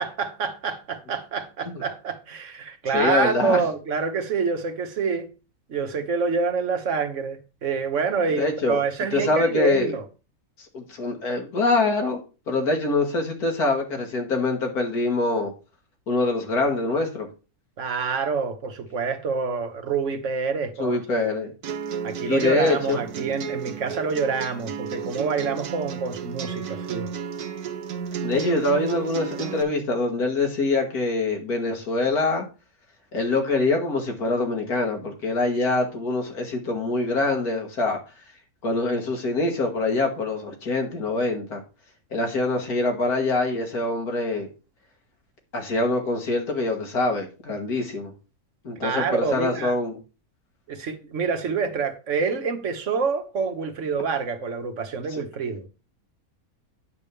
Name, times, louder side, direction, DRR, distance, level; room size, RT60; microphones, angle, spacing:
voice 1, 0.0-5.3 5.7-10.0 17.8-21.3 22.0-27.1 48.8-49.7 50.7-55.7, right 5 dB, 55° right, 1.4 m, -27 dB
voice 2, 2.9-3.6 8.4-8.8 9.1-9.9 10.7-12.2 12.5-15.5 16.1-17.3 20.8-21.5 22.2-23.0 28.2-32.5 33.1-38.0 38.6-41.6 42.1-44.5 45.5-48.1 48.6-50.0 55.1-55.2, left 2 dB, 80° left, 2.2 m, -24 dB
sound 1, 21.6-29.6, right 7 dB, 85° right, 1.4 m, -33 dB
9.3 x 3.5 x 6.8 m
omnidirectional pair, 1.6 m